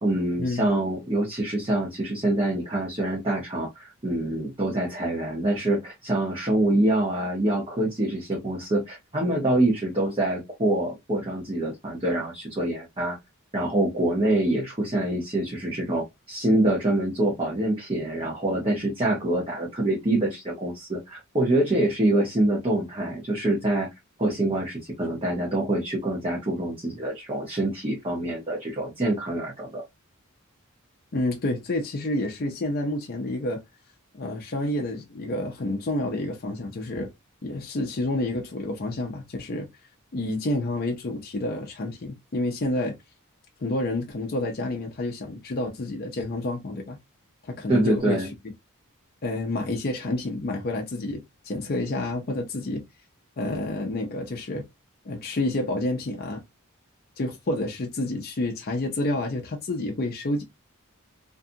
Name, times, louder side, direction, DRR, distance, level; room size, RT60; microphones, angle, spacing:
voice 1, 0.0-13.2 13.5-23.9 24.2-29.8 47.7-48.3, right 1 dB, 25° right, 0.8 m, -25 dB
voice 2, 31.1-33.6 34.1-37.1 37.4-39.7 40.1-43.0 43.6-47.0 47.5-48.2 49.2-52.8 53.4-54.7 55.0-56.4 57.2-60.4, left 2 dB, 45° left, 0.5 m, -29 dB
2.6 x 2.3 x 2.6 m
head